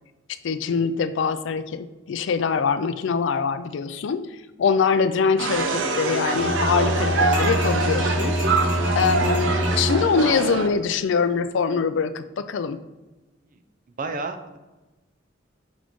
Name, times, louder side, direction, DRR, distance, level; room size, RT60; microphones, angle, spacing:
voice 1, 0.3-8.4 8.9-12.8, left 5 dB, 70° left, 12 dB, 0.4 m, -24 dB
sound 1, 5.4-10.7, right 3 dB, 85° right, 0.7 m, -25 dB
Bowed string instrument, 6.3-10.3, equal, 5° right, 1.0 m, -25 dB
sound 2, 7.3-9.8, right 1 dB, 65° right, 2.1 m, -36 dB
voice 2, 14.0-14.6, right 3 dB, 45° right, 7 dB, 0.5 m, -31 dB
6.1 x 5.2 x 3.1 m, 1.1 s
head